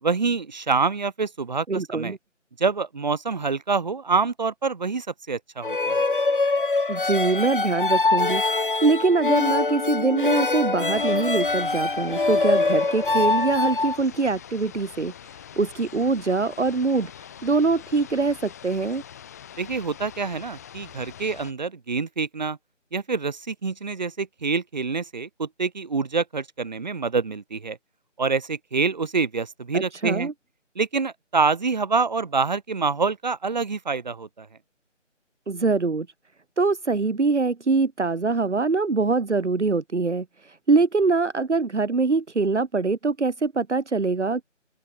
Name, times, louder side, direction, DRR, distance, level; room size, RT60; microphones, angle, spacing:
voice 1, 0.0-2.2 2.6-6.0 19.6-22.6 22.9-27.8 28.2-30.3 30.8-34.5, right 4 dB, 35° right, 4.2 m, -26 dB
voice 2, 1.7-2.2 6.9-8.4 8.8-15.1 15.6-19.0 29.7-30.3 35.5-36.1 36.6-44.4, right 4 dB, 65° right, 1.7 m, -23 dB
sound 1, 5.6-14.0, left 3 dB, 45° left, 0.6 m, -23 dB
sound 2, 10.9-21.5, left 9 dB, 15° left, 2.8 m, -44 dB
open air
figure-of-eight pair, 170°, 37 cm